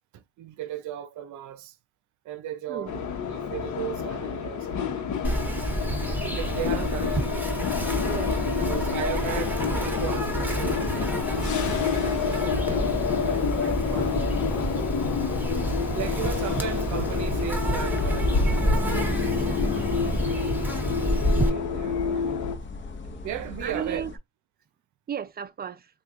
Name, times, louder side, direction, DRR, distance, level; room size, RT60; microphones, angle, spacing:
voice 1, 0.1-1.8 2.2-5.2 6.1-7.6 8.7-14.8 15.9-20.2 21.3-22.3 23.2-24.1, right 11 dB, 75° right, 0.7 m, -37 dB
sound 1, 2.9-22.6, left 6 dB, 70° left, 1.0 m, -29 dB
Insect, 5.2-21.5, right 1 dB, 5° right, 1.0 m, -29 dB
voice 2, 8.0-8.7 23.6-24.1 25.1-25.9, right 7 dB, 30° right, 0.4 m, -34 dB
sound 2, 17.0-24.2, left 4 dB, 40° left, 0.8 m, -37 dB
3.2 x 2.4 x 3.7 m
cardioid pair, 90°, 30 cm